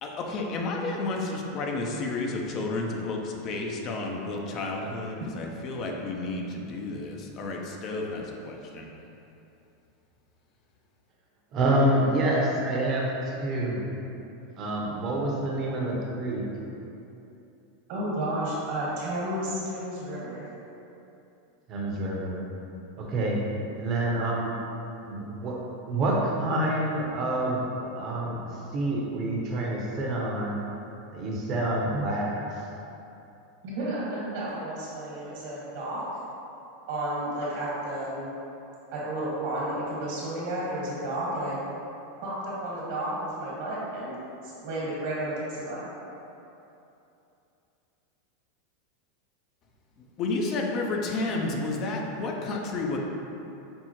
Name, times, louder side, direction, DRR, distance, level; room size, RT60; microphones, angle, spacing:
voice 1, 0.0-8.2 8.8-8.9 50.2-53.0, left 3 dB, 45° left, 0 dB, 0.5 m, -31 dB
voice 2, 11.5-13.9 14.6-16.4 21.7-22.4 23.0-23.4 23.8-24.5 25.0-25.6 25.9-28.4 28.7-30.5 31.1-32.4, right 1 dB, 45° right, -3 dB, 0.8 m, -27 dB
voice 3, 17.9-20.5 33.6-36.0 36.9-38.3 38.9-41.6 42.2-44.2 44.4-45.9, right 1 dB, 65° right, -7 dB, 1.3 m, -32 dB
5.3 x 2.0 x 2.9 m, 2.8 s
hypercardioid pair, 100°, 0 cm